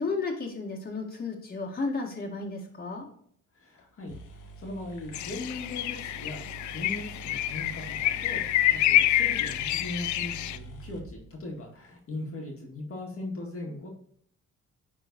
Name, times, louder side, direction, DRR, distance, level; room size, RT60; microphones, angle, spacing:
voice 1, 0.0-3.1, left 3 dB, 30° left, -1 dB, 2.0 m, -33 dB
voice 2, 3.5-13.9, left 2 dB, 45° left, -1 dB, 1.9 m, -39 dB
sound 1, 3.8-3.9 4.1-11.9, right 3 dB, 85° left, 1.3 m, -46 dB
sound 2, 5.1-10.6, left 13 dB, 70° left, 0.5 m, -27 dB
10.5 x 3.7 x 2.7 m, 0.63 s
cardioid pair, 90°, 30 cm